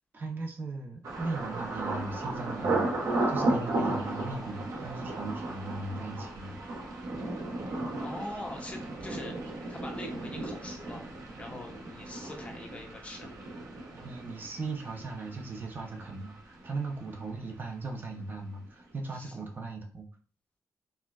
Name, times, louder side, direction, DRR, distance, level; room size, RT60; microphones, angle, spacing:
voice 1, 0.1-6.6 13.9-20.1, right 3 dB, 35° right, 1 dB, 0.5 m, -38 dB
Thunder, 1.0-16.8 17.1-17.7 18.1-18.4, right 2 dB, 70° right, 0.8 m, -35 dB
voice 2, 8.0-11.0 11.4-13.3 19.1-19.3, left 2 dB, 20° left, 1 dB, 0.6 m, -43 dB
4.3 x 2.1 x 2.3 m, 0.41 s
wide cardioid pair, 150°, 6 cm